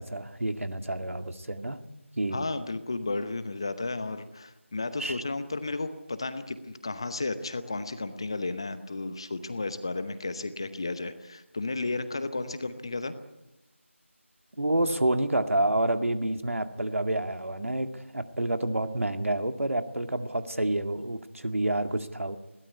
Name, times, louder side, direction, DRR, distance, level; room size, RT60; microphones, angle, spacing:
voice 1, 0.0-1.8 2.2-2.5 5.0-5.2 14.6-22.4, right 1 dB, 80° right, 7 dB, 2.1 m, -28 dB
voice 2, 2.3-13.1, left 3 dB, 20° left, 11 dB, 0.9 m, -33 dB
21.5 x 17.0 x 9.6 m, 0.98 s
figure-of-eight pair, 175°, 7 cm